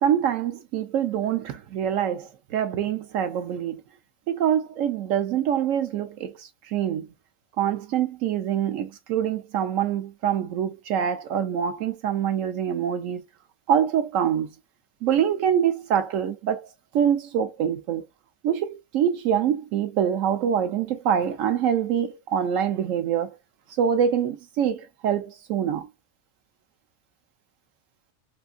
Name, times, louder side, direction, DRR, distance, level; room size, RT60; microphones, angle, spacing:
voice 1, 0.0-3.8 4.3-7.1 7.6-13.2 13.7-14.5 15.0-16.7 16.9-18.1 18.4-23.4 23.8-25.9, right 9 dB, 75° right, 1.0 m, -25 dB
3.4 x 2.5 x 2.4 m
omnidirectional pair, 1.4 m